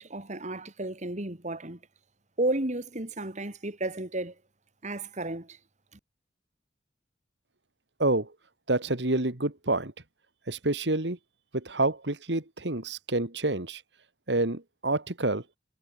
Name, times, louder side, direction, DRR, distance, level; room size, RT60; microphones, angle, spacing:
voice 1, 0.0-1.8 2.4-4.4 4.8-5.6, right 2 dB, 40° right, 3.0 m, -32 dB
voice 2, 8.0-8.3 8.7-9.9 10.5-11.2 11.5-13.8 14.3-15.4, right 2 dB, 70° right, 2.4 m, -28 dB
head